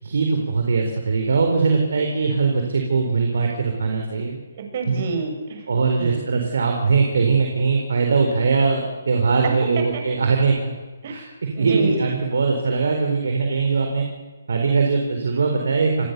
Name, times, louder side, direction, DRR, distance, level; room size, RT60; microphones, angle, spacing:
voice 1, 0.0-4.4 4.9-5.0 5.7-10.7 11.1-14.0 14.5-16.1, right 4 dB, 65° right, 3 dB, 4.3 m, -21 dB
voice 2, 4.5-5.7 6.0-6.2 9.4-9.5 9.9-10.0 11.0-11.1 11.6-12.0, right 4 dB, 45° right, 3 dB, 7.3 m, -28 dB
29.0 x 21.0 x 7.0 m, 1.2 s
figure-of-eight pair, 145°, 0 cm